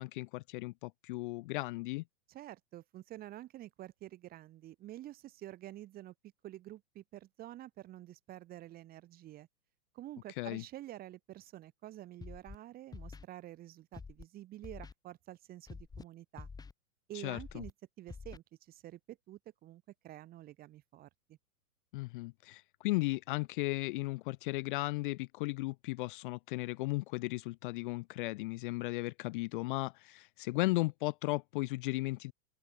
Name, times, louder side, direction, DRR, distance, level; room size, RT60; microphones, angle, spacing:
voice 1, 0.0-2.0 10.4-10.6 17.1-17.6 21.9-32.3, left 21 dB, 35° left, 0.6 m, -36 dB
voice 2, 2.3-6.1 6.4-9.5 9.9-16.5 17.1-17.7 18.0-21.4, right 14 dB, 20° right, 0.8 m, -49 dB
Scratching (performance technique), 12.2-12.6 12.9-13.2 13.9-14.2 14.6-14.9 15.7-16.0 16.4-16.7 17.4-17.7 18.1-18.4, left 4 dB, 10° left, 1.5 m, -47 dB
open air
hypercardioid pair, 140°, 47 cm